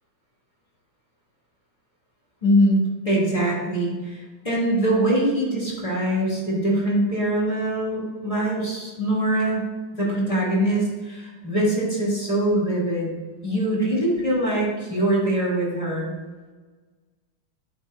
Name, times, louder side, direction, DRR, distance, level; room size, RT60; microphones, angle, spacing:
voice 1, 2.4-2.8 3.1-9.7 9.9-13.1 13.4-16.1, right 1 dB, 15° left, -6 dB, 3.5 m, -23 dB
11.0 x 9.5 x 2.8 m, 1.3 s
omnidirectional pair, 2.4 m